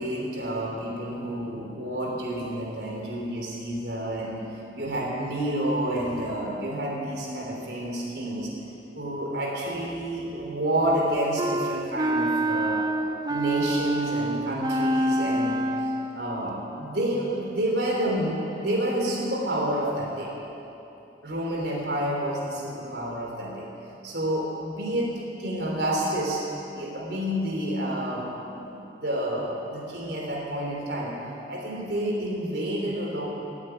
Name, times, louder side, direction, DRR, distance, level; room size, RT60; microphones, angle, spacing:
voice 1, 0.0-4.4 4.7-8.5 8.9-12.9 13.3-20.3 21.2-23.7 24.0-26.4 26.7-31.1 31.5-33.3, right 1 dB, 70° right, -2 dB, 3.4 m, -29 dB
Wind instrument woodwind instrument, 11.4-16.2, right 1 dB, 20° right, 0.5 m, -27 dB
14.0 x 8.1 x 9.5 m, 2.9 s
head